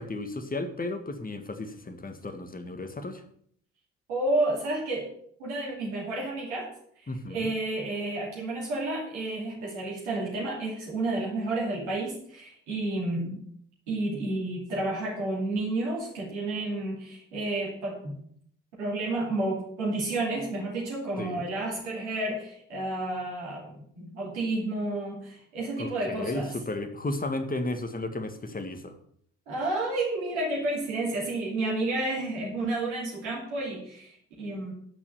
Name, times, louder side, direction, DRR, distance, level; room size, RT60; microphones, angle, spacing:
voice 1, 0.0-3.2 7.1-7.5 21.2-21.5 25.8-29.0, left 2 dB, 25° left, 7 dB, 1.8 m, -34 dB
voice 2, 4.1-5.1 5.4-6.7 7.0-13.4 13.9-18.1 18.8-26.5 29.5-34.7, right 2 dB, 80° right, -3 dB, 2.7 m, -31 dB
10.5 x 6.0 x 6.9 m, 0.64 s
figure-of-eight pair, 40°, 34 cm